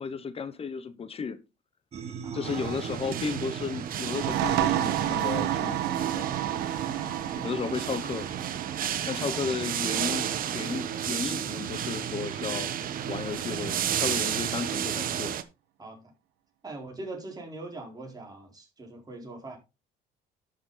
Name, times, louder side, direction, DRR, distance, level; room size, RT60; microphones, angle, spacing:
voice 1, 0.0-1.4 2.3-6.3 7.4-8.3 9.1-15.4, left 5 dB, 35° left, 1.1 m, -34 dB
sound 1, 1.9-15.3, right 6 dB, 40° right, 2.2 m, -40 dB
voice 2, 2.2-2.9 7.0-7.5 9.1-9.6 15.8-16.0 16.6-19.6, right 2 dB, 20° right, 4.3 m, -42 dB
sound 2, 2.4-15.4, right 10 dB, 55° right, 1.2 m, -33 dB
sound 3, 4.0-11.4, right 12 dB, 80° right, 1.6 m, -31 dB
12.0 x 6.9 x 4.0 m
cardioid pair, 110°, 17 cm